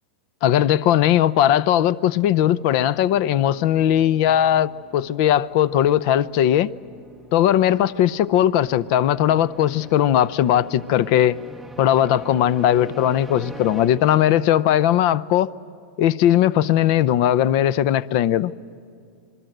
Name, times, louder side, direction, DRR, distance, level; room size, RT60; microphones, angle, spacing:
voice 1, 0.4-6.7 7.3-11.4 11.8-15.5 16.0-18.5, left 11 dB, 45° left, 0.6 m, -18 dB
sound 1, 2.1-14.7, right 2 dB, ahead, 0.7 m, -43 dB
27.0 x 21.5 x 8.0 m
supercardioid pair, 150°, 6 cm